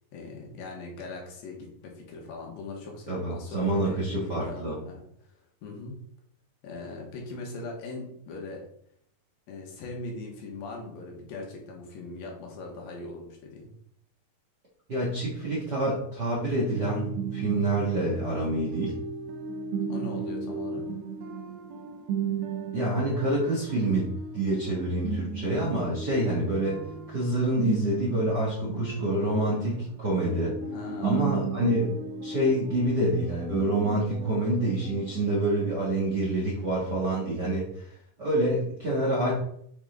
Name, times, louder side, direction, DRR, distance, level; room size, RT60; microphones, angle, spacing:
voice 1, 0.1-5.0 5.6-6.0 6.6-8.6 9.5-13.7 19.9-20.9 30.7-31.3, left 3 dB, 75° left, -1 dB, 3.2 m, -40 dB
voice 2, 3.1-4.8 14.9-19.0 22.7-26.8 27.1-30.6 31.0-32.0 32.2-37.9 38.2-39.3, right 1 dB, 45° right, -5 dB, 1.3 m, -27 dB
sound 1, 16.7-35.5, right 5 dB, 80° right, 2.6 m, -36 dB
8.0 x 4.4 x 3.9 m, 0.68 s
omnidirectional pair, 4.3 m